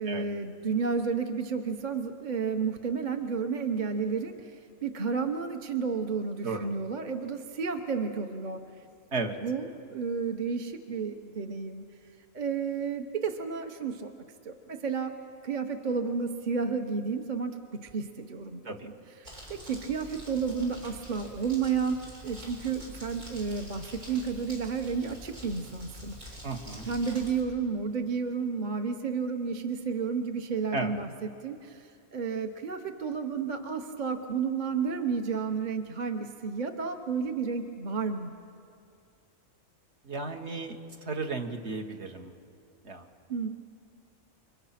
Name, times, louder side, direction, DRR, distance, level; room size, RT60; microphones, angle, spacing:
voice 1, 0.0-8.6 9.4-11.9 12.3-14.1 14.4-15.1 15.4-18.7 19.2-26.4 26.9-31.1 31.4-38.3 43.3-43.5, right 5 dB, 40° right, 5 dB, 1.0 m, -31 dB
Crumpling crinkling, 19.2-27.4, equal, 90° right, 6.2 m, -46 dB
voice 2, 26.4-26.9 30.7-31.0 40.0-40.8 41.0-42.3 42.8-43.1, right 3 dB, 55° right, 3 dB, 1.7 m, -34 dB
29.0 x 25.0 x 5.9 m, 2.4 s
omnidirectional pair, 1.4 m